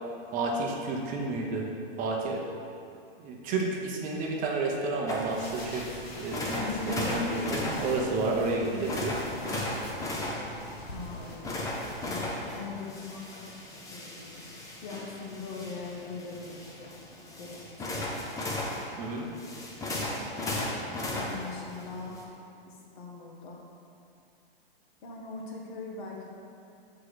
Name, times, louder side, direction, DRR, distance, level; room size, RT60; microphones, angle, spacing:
voice 1, 0.3-1.7 2.0-2.4 3.2-5.9 6.2-9.2 19.0-19.3, right 3 dB, 25° right, -1 dB, 0.8 m, -30 dB
sound 1, 5.1-12.6, left 1 dB, 90° left, 1.3 m, -44 dB
sound 2, 5.1-22.2, left 1 dB, 10° left, 0.7 m, -36 dB
voice 2, 6.5-7.3 10.9-11.4 12.1-13.5 13.9-14.4 14.8-17.1 17.4-18.0 21.1-22.2 22.6-23.6 25.0-26.3, left 4 dB, 55° left, -1 dB, 1.4 m, -41 dB
6.0 x 4.9 x 4.7 m, 2.5 s
hypercardioid pair, 130°, 30 cm